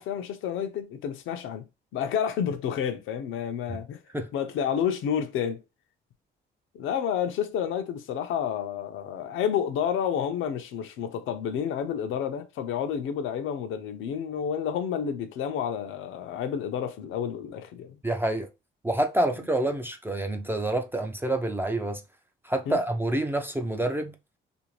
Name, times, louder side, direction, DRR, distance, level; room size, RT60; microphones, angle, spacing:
voice 1, 0.0-1.6 1.9-5.6 6.7-18.0 22.7-22.8, left 8 dB, 85° left, 0.5 m, -30 dB
voice 2, 18.0-18.5 18.8-22.0 22.4-24.1, right 1 dB, 10° right, 0.3 m, -27 dB
2.6 x 2.5 x 3.0 m
cardioid pair, 90°, 20 cm